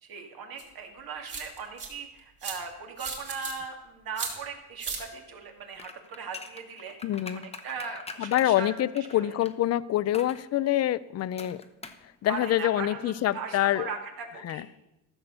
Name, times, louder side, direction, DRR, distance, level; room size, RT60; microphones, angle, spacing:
voice 1, 0.0-7.0 7.3-9.3 12.3-14.6, right 5 dB, 60° right, 3 dB, 2.4 m, -39 dB
sound 1, 0.6-0.7 1.3-1.9 2.4-2.6 3.0-3.5 4.2-4.3 4.8-5.0, right 4 dB, 35° right, 3.4 m, -35 dB
sound 2, 5.7-9.5 10.1-10.4 11.4-12.1 12.3-12.4, left 4 dB, 15° left, 0.9 m, -43 dB
voice 2, 7.0-7.4 8.2-11.6 12.2-13.9 14.4-14.7, left 13 dB, 40° left, 18 dB, 0.5 m, -26 dB
15.0 x 7.0 x 6.9 m, 0.96 s
cardioid pair, 140°, 40 cm